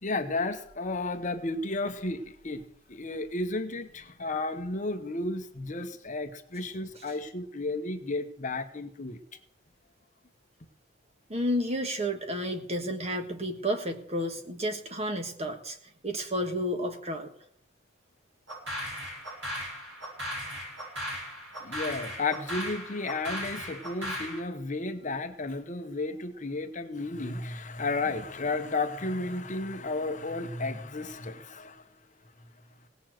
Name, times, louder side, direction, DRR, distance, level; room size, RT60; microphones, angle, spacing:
voice 1, 0.0-2.6 2.9-9.2 21.6-31.8, left 2 dB, 40° left, 8 dB, 1.0 m, -33 dB
voice 2, 11.3-15.8 16.0-17.3, equal, 30° right, 6 dB, 1.5 m, -31 dB
sound 1, 18.5-24.4, equal, 70° right, 7.3 m, -37 dB
17.5 x 7.0 x 7.7 m, 0.69 s
head